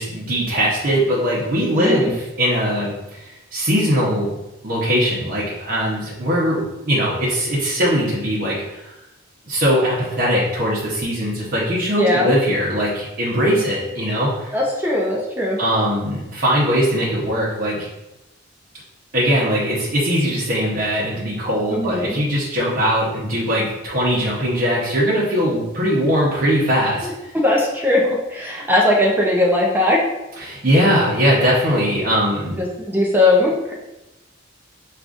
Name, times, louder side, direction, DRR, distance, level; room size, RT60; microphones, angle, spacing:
voice 1, 0.0-4.3 4.6-8.9 9.5-14.5 15.6-17.9 19.1-27.3 30.4-32.6, equal, 45° right, -7 dB, 0.8 m, -20 dB
voice 2, 1.7-2.1 12.0-12.4 14.5-15.6 21.7-22.2 27.0-30.1 32.6-33.7, left 1 dB, 10° right, -3 dB, 0.5 m, -19 dB
6.4 x 2.4 x 2.5 m, 0.97 s
head